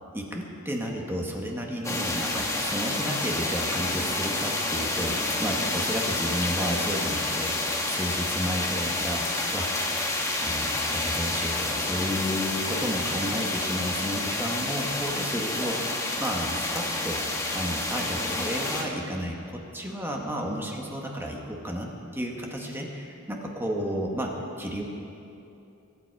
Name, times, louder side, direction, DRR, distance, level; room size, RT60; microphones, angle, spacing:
voice 1, 0.1-9.7 10.4-24.9, equal, 10° right, 0 dB, 1.4 m, -32 dB
sound 1, 1.8-18.8, left 2 dB, 15° left, 1.3 m, -29 dB
23.0 x 9.3 x 4.7 m, 2.8 s
head